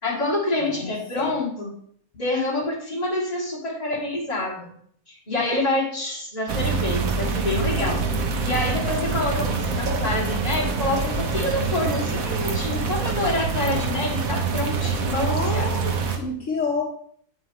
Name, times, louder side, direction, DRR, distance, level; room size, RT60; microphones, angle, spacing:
voice 1, 0.0-1.7 2.1-4.7 5.1-8.0 8.4-15.8, left 2 dB, 25° left, -7 dB, 3.2 m, -27 dB
voice 2, 0.8-1.3 15.3-16.8, left 4 dB, 60° left, 1 dB, 1.4 m, -29 dB
sound 1, 6.5-16.2, right 4 dB, 70° right, 1.4 m, -25 dB
9.0 x 7.8 x 3.2 m, 0.62 s
omnidirectional pair, 1.5 m